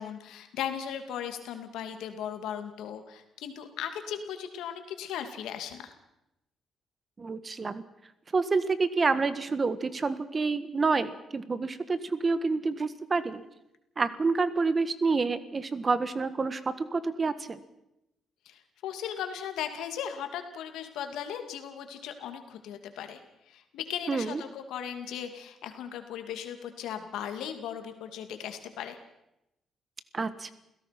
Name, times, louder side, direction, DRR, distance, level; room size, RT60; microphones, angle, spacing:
voice 1, 0.0-5.9 18.5-23.2 23.5-29.0, left 9 dB, 90° left, 7 dB, 2.5 m, -37 dB
voice 2, 7.2-7.8 8.3-13.4 14.0-17.6 24.1-24.4 30.1-30.5, right 4 dB, 35° right, 13 dB, 1.5 m, -28 dB
28.5 x 16.5 x 6.0 m, 0.87 s
cardioid pair, 90°, 0 cm